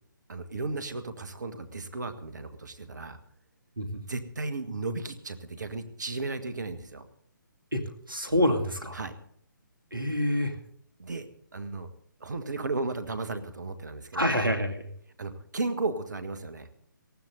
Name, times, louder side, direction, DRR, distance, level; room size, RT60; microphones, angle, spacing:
voice 1, 0.3-3.2 4.1-7.0 8.9-9.1 11.0-11.3 11.5-11.9 12.2-14.2 15.2-16.7, right 3 dB, 60° right, 10 dB, 1.6 m, -34 dB
voice 2, 8.1-9.0 9.9-10.6 14.1-14.9, left 1 dB, 80° right, 5 dB, 2.4 m, -27 dB
19.0 x 14.0 x 4.0 m, 0.64 s
figure-of-eight pair, 140°, 11 cm